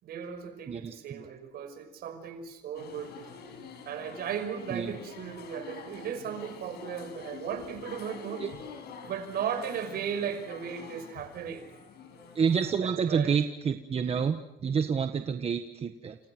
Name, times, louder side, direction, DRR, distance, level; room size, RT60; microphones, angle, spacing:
voice 1, 0.0-3.1 3.9-8.5 9.1-11.7 12.8-13.4, right 8 dB, 65° right, 8 dB, 5.6 m, -36 dB
voice 2, 0.7-1.3 4.7-4.9 8.4-8.5 12.3-16.2, right 6 dB, 35° right, 7 dB, 1.5 m, -29 dB
sound 1, 2.7-12.7, left 5 dB, 75° left, 6.8 m, -46 dB
29.5 x 28.0 x 6.2 m, 0.84 s
cardioid pair, 110°, 17 cm